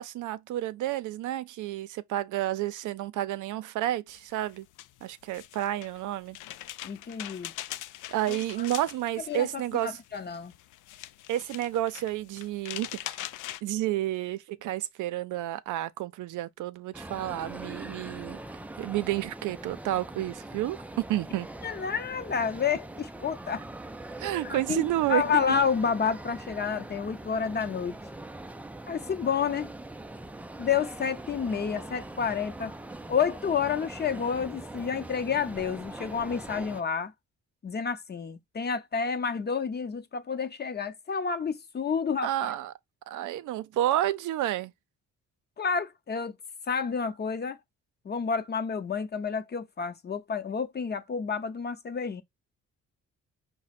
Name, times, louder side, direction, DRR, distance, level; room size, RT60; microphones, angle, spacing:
voice 1, 0.0-4.7 5.0-6.4 8.1-10.0 11.3-13.2 13.6-18.4 18.8-20.8 21.1-21.5 24.2-25.4 42.2-42.7 43.1-44.7, right 13 dB, 80° right, 0.6 m, -30 dB
sound 1, 4.1-13.6, left 14 dB, 85° left, 0.5 m, -42 dB
voice 2, 6.8-7.5 8.3-8.7 9.3-10.5 21.6-23.6 24.4-28.0 28.9-29.7 30.6-32.7 33.1-37.1 37.6-42.5 45.6-46.4 46.7-47.6 48.0-52.2, left 6 dB, 35° left, 0.7 m, -30 dB
sound 2, 16.9-36.8, right 2 dB, 5° right, 0.3 m, -42 dB
5.0 x 2.2 x 4.1 m
cardioid pair, 90°, 30 cm